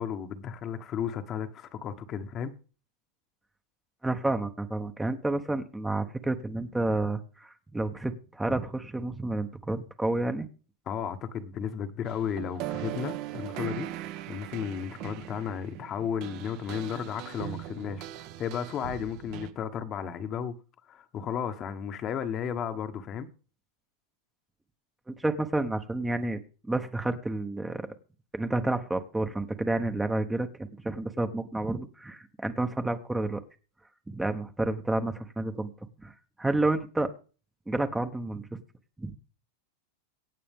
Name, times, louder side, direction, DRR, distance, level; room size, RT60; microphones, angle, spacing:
voice 1, 0.0-2.5 10.9-13.9 14.3-20.6 20.9-23.3, left 8 dB, 35° left, 1.3 m, -34 dB
voice 2, 4.0-10.5 25.1-27.9 28.3-30.5 30.8-33.4 34.1-35.7 36.0-37.1 37.7-38.6 39.0-39.2, right 2 dB, 5° right, 1.0 m, -30 dB
sound 1, 12.1-19.5, right 13 dB, 50° right, 1.2 m, -39 dB
23.0 x 8.5 x 3.7 m
supercardioid pair, 125°, 0 cm